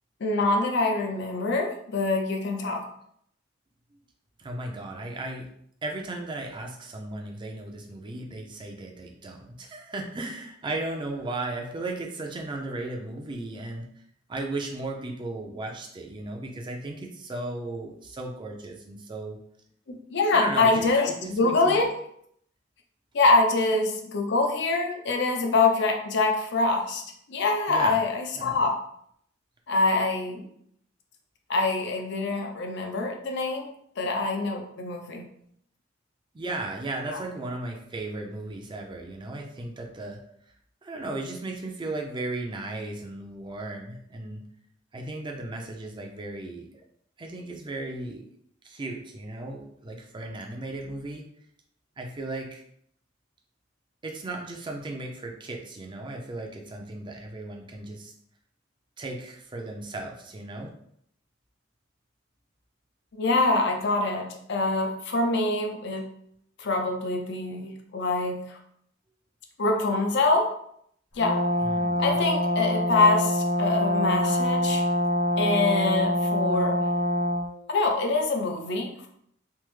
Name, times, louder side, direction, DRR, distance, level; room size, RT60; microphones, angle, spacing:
voice 1, 0.2-2.9 19.9-21.9 23.1-27.0 27.3-28.8 29.7-30.5 31.5-33.7 34.0-35.2 37.1-37.2 63.1-66.1 66.6-68.6 69.6-70.5 71.2-71.4 72.0-74.8 75.4-76.8 77.7-79.1, left 3 dB, 60° left, 3 dB, 0.5 m, -25 dB
voice 2, 4.4-5.5 5.8-13.9 14.3-19.4 20.3-20.8 21.2-21.8 27.7-28.0 28.4-28.6 36.3-40.2 40.8-44.4 44.9-46.8 47.2-48.3 48.6-51.2 52.0-52.6 54.0-58.1 59.0-60.7 71.6-72.2, right 2 dB, 25° right, 2 dB, 0.4 m, -36 dB
Brass instrument, 71.2-77.5, left 1 dB, 80° left, 0.9 m, -25 dB
3.3 x 2.0 x 3.1 m, 0.69 s
head